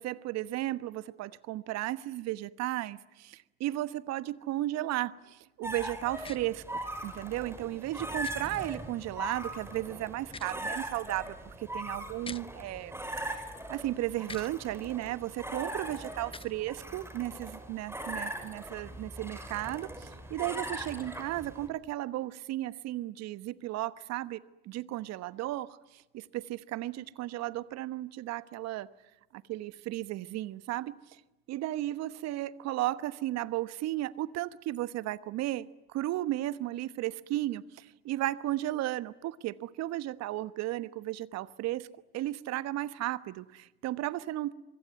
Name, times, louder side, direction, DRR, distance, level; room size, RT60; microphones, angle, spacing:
voice 1, 0.0-6.6 7.0-13.0 13.7-28.9 29.3-31.2 31.5-41.9 42.1-44.5, right 15 dB, 60° right, 1.2 m, -35 dB
sound 1, 5.6-21.7, right 1 dB, 10° right, 5.9 m, -40 dB
sound 2, 6.2-6.4 8.2-8.4 10.2-10.6 12.2-12.4 14.2-14.5 16.2-16.5, left 4 dB, 20° left, 0.9 m, -44 dB
25.0 x 23.0 x 9.5 m
hypercardioid pair, 65°, 29 cm